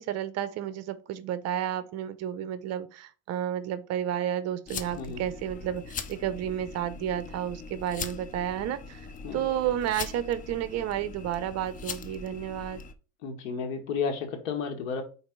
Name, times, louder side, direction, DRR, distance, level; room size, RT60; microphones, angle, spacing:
voice 1, 0.0-9.0 9.3-12.8, right 11 dB, 40° right, 0.7 m, -31 dB
sound 1, 4.7-12.9, left 5 dB, 20° left, 0.4 m, -41 dB
voice 2, 13.2-15.0, left 5 dB, 90° left, 1.9 m, -32 dB
5.1 x 4.1 x 5.2 m
supercardioid pair, 140°, 40 cm